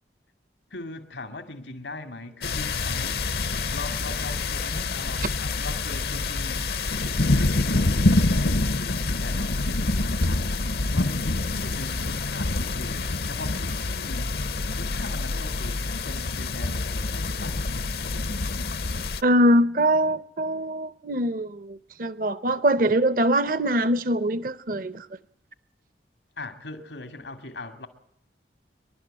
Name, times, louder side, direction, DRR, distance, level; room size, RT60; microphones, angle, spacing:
voice 1, 0.7-3.2 3.7-6.7 7.4-14.3 14.8-17.6 26.4-27.9, left 2 dB, 90° left, 2.4 m, -40 dB
sound 1, 2.4-19.2, left 2 dB, 60° left, 0.7 m, -26 dB
voice 2, 19.2-25.1, right 1 dB, 50° right, 0.7 m, -23 dB
26.5 x 12.0 x 8.9 m
head